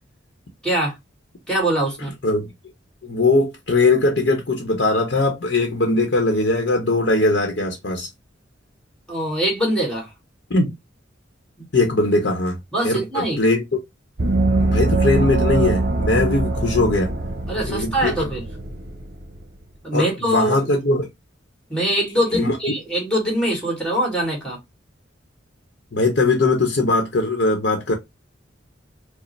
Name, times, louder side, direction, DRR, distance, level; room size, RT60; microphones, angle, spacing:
voice 1, 0.6-1.0 1.5-2.1 9.1-10.1 11.6-11.7 12.7-13.4 17.5-18.4 19.8-20.7 21.7-24.6, right 1 dB, 5° left, 1.7 m, -23 dB
voice 2, 3.0-8.1 10.5-10.7 11.7-12.6 12.8-13.6 14.6-17.1 17.7-18.3 19.9-21.1 22.3-22.6 25.9-27.9, left 2 dB, 60° left, 0.9 m, -20 dB
Gong, 14.2-19.4, right 2 dB, 55° right, 0.8 m, -22 dB
4.9 x 2.1 x 3.2 m
head